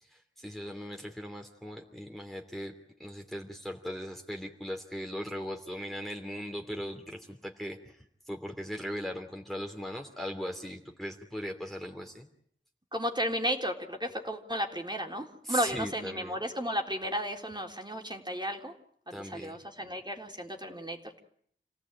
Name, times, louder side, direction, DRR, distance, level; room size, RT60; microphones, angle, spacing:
voice 1, 0.0-2.7 3.0-12.3 15.4-16.4 19.1-19.6, equal, ahead, 2 dB, 3.0 m, -39 dB
voice 2, 12.9-18.7 19.1-21.2, equal, 20° right, 2 dB, 3.7 m, -34 dB
28.5 x 17.5 x 9.0 m, 0.67 s
wide cardioid pair, 55°, 20 cm